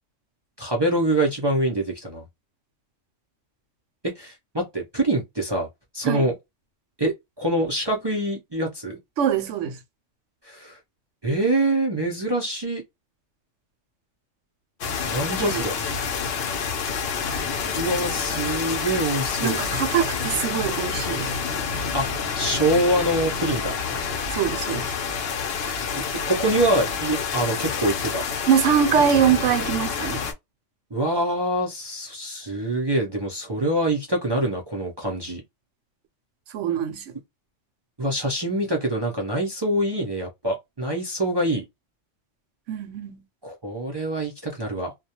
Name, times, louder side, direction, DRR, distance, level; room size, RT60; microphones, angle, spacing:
voice 1, 0.6-2.2 4.0-5.7 5.9-6.3 7.0-9.0 10.4-10.8 11.2-12.8 15.1-15.7 17.7-19.6 21.9-23.8 26.2-28.2 30.9-35.4 38.0-41.6 43.4-44.9, right 1 dB, 40° right, 0.3 m, -25 dB
voice 2, 9.2-9.8 15.4-15.5 18.3-18.4 19.4-21.3 24.3-24.9 28.5-30.2 36.5-37.1 42.7-43.2, right 8 dB, 80° right, 0.9 m, -23 dB
sound 1, 14.8-30.3, left 6 dB, 60° left, 0.7 m, -28 dB
2.3 x 2.1 x 2.8 m
omnidirectional pair, 1.3 m